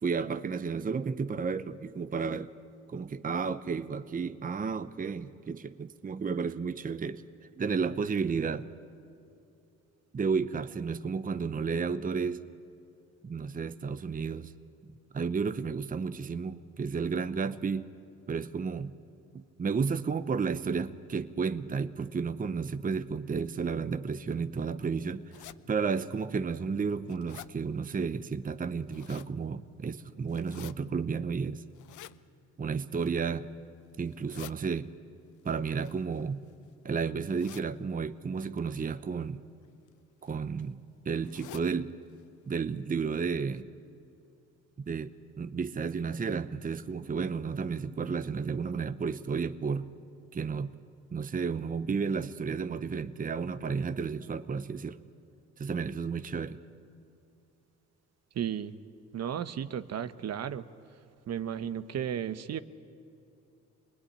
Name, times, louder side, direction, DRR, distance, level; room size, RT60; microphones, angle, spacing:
voice 1, 0.0-2.5 2.9-8.7 10.1-12.4 13.2-14.5 15.1-17.9 18.3-18.9 19.3-25.3 25.7-31.6 32.6-33.5 34.0-34.9 35.4-36.4 36.8-39.4 40.2-42.0 42.5-43.7 44.9-49.9 50.3-50.7 51.1-55.0 55.6-56.6, right 5 dB, 30° right, 11 dB, 0.8 m, -32 dB
sound 1, 25.3-25.6 26.2-26.3 26.7-27.5 28.6-29.3 30.3-30.7 31.7-32.2 32.9-33.3 34.0-34.5 35.7-36.7 37.3-37.7 38.4-38.6 39.6-39.9 40.2-40.3 40.6-40.7 41.2-41.7 42.1-42.2 42.5-42.6 43.2-43.3 43.6-43.7, left 14 dB, 75° left, 0.7 m, -49 dB
voice 2, 58.3-58.8 59.1-60.6 61.3-62.6, right 9 dB, 55° right, 12 dB, 1.0 m, -34 dB
26.0 x 20.0 x 10.0 m, 2.6 s
cardioid pair, 90°, 30 cm